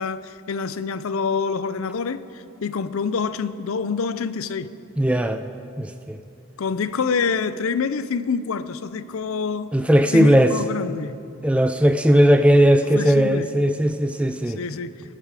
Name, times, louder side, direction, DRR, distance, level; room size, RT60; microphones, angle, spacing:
voice 1, 0.0-4.7 6.6-9.7 10.1-11.1 12.9-13.5 14.6-14.9, left 5 dB, 70° left, 13 dB, 0.5 m, -26 dB
voice 2, 5.0-5.4 5.8-6.2 9.7-10.5 11.4-14.6, equal, 5° right, 8 dB, 0.3 m, -17 dB
20.5 x 9.8 x 4.8 m, 2.6 s
head